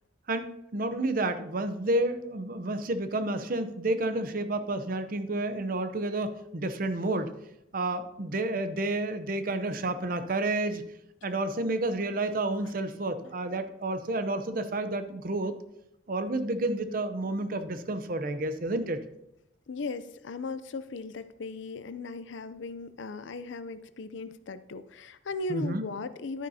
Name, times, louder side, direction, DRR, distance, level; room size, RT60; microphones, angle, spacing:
voice 1, 0.3-7.3 7.7-10.8 11.2-15.5 16.1-19.0 25.5-25.9, right 2 dB, 45° right, 10 dB, 0.7 m, -30 dB
voice 2, 19.7-26.5, left 3 dB, 70° left, 13 dB, 0.5 m, -37 dB
11.5 x 9.6 x 2.8 m, 0.85 s
head